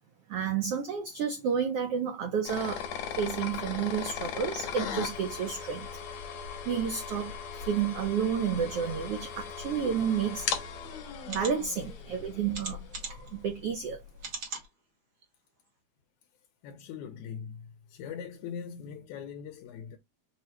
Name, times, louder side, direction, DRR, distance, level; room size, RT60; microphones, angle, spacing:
voice 1, 0.3-2.8 3.2-5.9 6.6-10.5 11.3-14.0, right 7 dB, 75° right, 1.4 m, -31 dB
sound 1, 2.5-13.3, left 7 dB, 70° left, 2.2 m, -38 dB
sound 2, 11.2-11.5 12.5-13.3 14.2-14.7 15.2-15.3 15.7-15.8, right 4 dB, 45° right, 1.3 m, -39 dB
voice 2, 16.6-20.0, left 7 dB, 85° left, 2.1 m, -41 dB
5.8 x 2.2 x 2.9 m
omnidirectional pair, 3.4 m